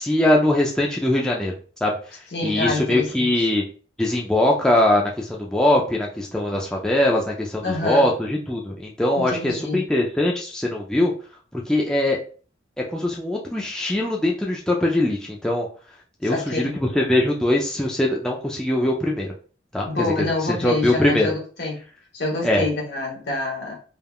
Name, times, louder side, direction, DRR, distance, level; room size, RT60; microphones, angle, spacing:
voice 1, 0.0-1.5 1.8-1.9 2.4-3.6 4.0-11.1 11.5-12.2 12.9-15.7 16.2-19.3 19.7-21.3 22.4-22.6, left 1 dB, 5° left, -2 dB, 0.3 m, -21 dB
voice 2, 2.3-3.5 7.6-8.1 9.3-9.9 16.2-16.8 19.8-21.8 22.1-23.7, left 2 dB, 65° left, 0 dB, 1.0 m, -27 dB
3.4 x 2.2 x 2.2 m, 0.40 s
head